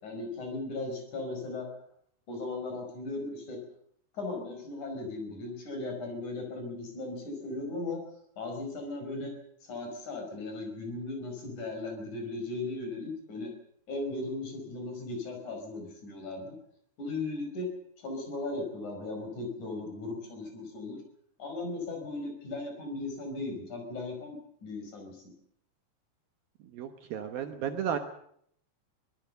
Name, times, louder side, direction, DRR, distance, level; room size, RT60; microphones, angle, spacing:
voice 1, 0.0-1.7 2.3-3.6 4.1-8.0 8.4-9.3 9.6-13.5 13.9-16.5 17.0-17.7 18.0-21.0 21.4-25.3, left 2 dB, 45° left, 3 dB, 6.2 m, -37 dB
voice 2, 26.7-28.0, right 8 dB, 65° right, 6 dB, 2.7 m, -33 dB
23.5 x 18.5 x 6.8 m, 0.67 s
omnidirectional pair, 5.0 m